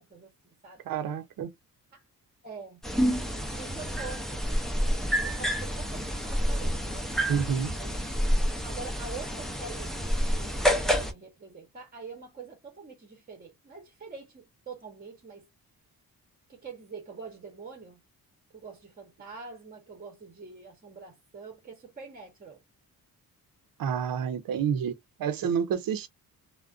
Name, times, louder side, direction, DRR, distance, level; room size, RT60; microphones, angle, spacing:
voice 1, 0.0-0.8 1.9-2.0 2.4-2.8 3.6-8.1 8.6-9.9 10.2-15.5 16.5-18.0 18.5-22.6, right 4 dB, 25° right, 0.8 m, -45 dB
voice 2, 0.9-1.5 7.3-7.8 23.8-26.1, right 7 dB, 65° right, 0.6 m, -29 dB
sound 1, 2.8-11.1, equal, ahead, 0.4 m, -28 dB
2.4 x 2.2 x 2.3 m
cardioid pair, 115°, 36 cm